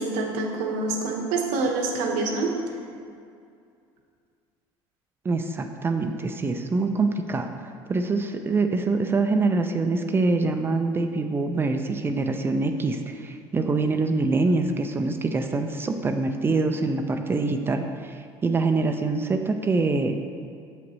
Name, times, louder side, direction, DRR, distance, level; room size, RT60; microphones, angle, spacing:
voice 1, 0.0-2.5, right 3 dB, 80° right, 1 dB, 1.1 m, -26 dB
voice 2, 5.2-7.5 7.9-20.2, right 3 dB, 20° right, 6 dB, 0.4 m, -25 dB
7.3 x 6.0 x 3.1 m, 2.4 s
cardioid pair, 120°, 11 cm